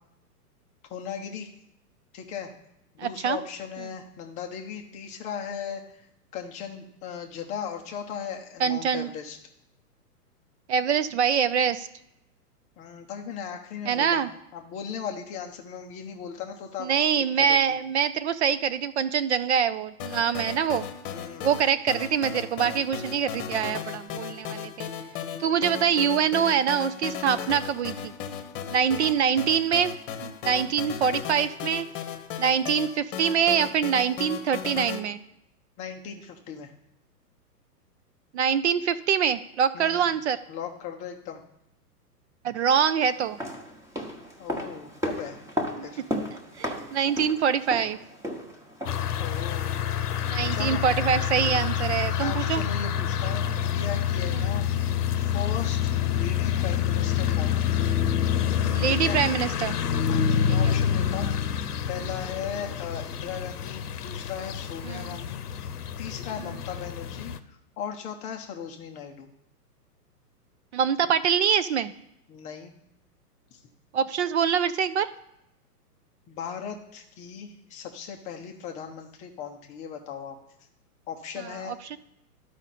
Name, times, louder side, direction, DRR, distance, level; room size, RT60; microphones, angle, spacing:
voice 1, 0.9-1.5 2.1-2.5 2.9-6.0 6.3-9.4 12.8-14.2 14.5-16.9 17.4-17.6 21.1-21.5 25.3-25.6 28.9-29.1 30.4-30.7 35.8-36.7 39.7-40.1 40.5-41.4 44.4-45.4 45.8-46.0 49.2-49.9 50.5-50.8 52.1-54.6 55.1-57.7 58.9-59.2 60.1-61.3 61.9-69.3 72.3-72.7 73.5-73.6 76.3-80.3 81.1-82.0, left 7 dB, 15° left, 4 dB, 0.5 m, -37 dB
voice 2, 3.0-3.4 8.6-9.1 10.7-11.9 13.9-14.3 16.8-20.8 21.4-24.9 25.4-28.1 28.7-29.9 30.2-31.9 32.4-35.2 38.3-40.4 42.4-43.4 45.8-45.9 46.6-48.0 50.2-52.6 54.3-54.5 58.7-59.7 64.8-65.2 70.7-71.9 73.9-75.1 81.4-82.0, right 7 dB, 45° right, 15 dB, 0.5 m, -24 dB
sound 1, 20.0-35.0, left 8 dB, 35° left, 0.9 m, -36 dB
sound 2, 43.2-49.2 49.5-49.6, equal, 5° right, 1.0 m, -34 dB
sound 3, 48.9-67.4, left 9 dB, 70° left, 0.8 m, -27 dB
12.0 x 5.0 x 4.2 m, 0.82 s
hypercardioid pair, 120°, 47 cm